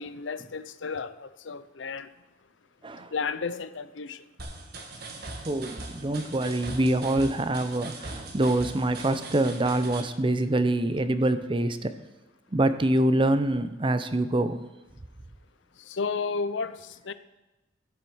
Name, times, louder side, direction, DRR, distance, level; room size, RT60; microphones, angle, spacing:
voice 1, 0.0-2.1 3.0-4.2 6.4-6.5 15.8-17.1, left 5 dB, 80° left, 0.6 m, -33 dB
sound 1, 4.4-10.0, right 2 dB, 55° right, 1.7 m, -40 dB
voice 2, 5.4-11.9 12.5-14.6, right 1 dB, 25° right, 0.7 m, -25 dB
14.0 x 8.2 x 6.3 m
head